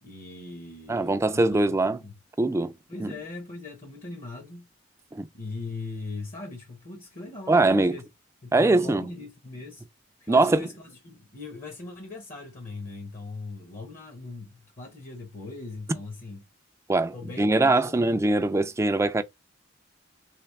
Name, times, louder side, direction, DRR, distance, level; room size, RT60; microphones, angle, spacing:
voice 1, 0.0-2.1 2.9-4.6 5.3-8.0 8.4-9.8 10.2-16.4 17.1-18.1, left 3 dB, 45° left, 0.9 m, -40 dB
voice 2, 0.9-2.0 2.4-2.7 3.0-3.1 5.1-5.3 7.5-8.0 8.5-9.0 10.3-10.7 16.9-19.2, right 2 dB, 15° right, 0.3 m, -22 dB
3.4 x 2.9 x 3.2 m
head